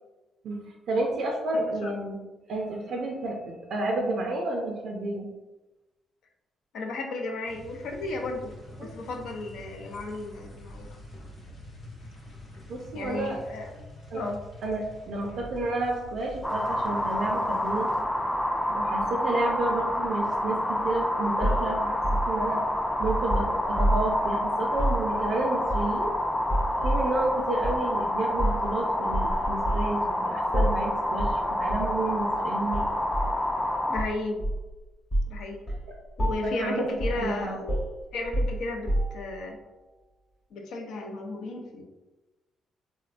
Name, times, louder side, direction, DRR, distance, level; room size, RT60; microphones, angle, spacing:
voice 1, 0.9-2.2 2.5-5.3 8.8-8.9 12.7-13.4 14.1-14.2 14.6-17.9 18.7-22.6 23.0-26.1 26.8-32.9 36.4-36.9 37.1-37.5, right 2 dB, 65° right, 0 dB, 0.4 m, -30 dB
voice 2, 1.5-1.9 6.7-8.5 8.8-11.0 12.9-13.9 14.1-14.4 33.9-34.4 35.3-35.6 36.2-37.8 38.1-39.6 40.5-41.8, left 2 dB, 75° left, 2 dB, 0.4 m, -34 dB
sound 1, 7.5-18.0, left 1 dB, 55° left, 0.8 m, -46 dB
sound 2, 16.4-34.0, left 1 dB, 10° left, 0.3 m, -28 dB
sound 3, 21.4-24.2 24.7-25.0 25.7-26.1 26.5-27.1 27.6-27.8 28.4-28.7 29.1-29.9 30.5-30.9 31.2-31.4 31.7-31.9 32.7-33.4 34.0-34.7 35.1-35.4 35.7-35.9 36.2-36.6 37.0-37.3 37.7-39.3, right 1 dB, 30° left, 0.9 m, -28 dB
3.4 x 2.1 x 2.4 m, 1.1 s
cardioid pair, 90°, 0 cm